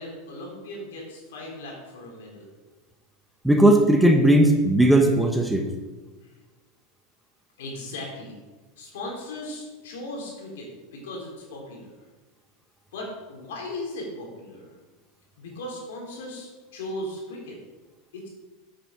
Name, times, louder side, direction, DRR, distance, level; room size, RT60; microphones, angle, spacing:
voice 1, 0.0-2.5 6.2-6.4 7.6-8.4 8.8-12.0 12.9-14.8 15.4-17.6 18.1-18.3, left 1 dB, 80° left, -1 dB, 3.3 m, -37 dB
voice 2, 3.4-5.7, right 1 dB, ahead, 3 dB, 0.9 m, -17 dB
8.0 x 7.5 x 4.9 m, 1.2 s
supercardioid pair, 130°, 0 cm